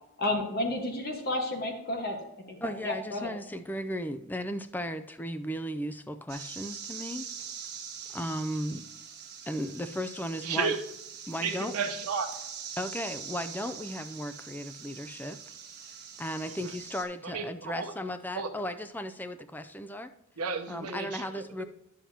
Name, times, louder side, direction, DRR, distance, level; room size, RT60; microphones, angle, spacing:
voice 1, 0.2-2.2 2.5-3.3, left 1 dB, 45° left, 2 dB, 1.4 m, -31 dB
voice 2, 2.6-7.3 8.1-8.8 9.5-10.8 11.3-11.7 12.8-15.4 16.2-20.1 20.7-21.6, equal, 10° left, 10 dB, 0.4 m, -35 dB
sound 1, 6.3-17.0, right 7 dB, 45° right, 1.4 m, -43 dB
voice 3, 10.4-10.8 11.4-12.3 16.6-16.7 17.2-17.9 18.3-18.5 20.4-21.4, right 5 dB, 85° right, 4 dB, 0.9 m, -32 dB
10.5 x 7.2 x 2.8 m, 0.86 s
head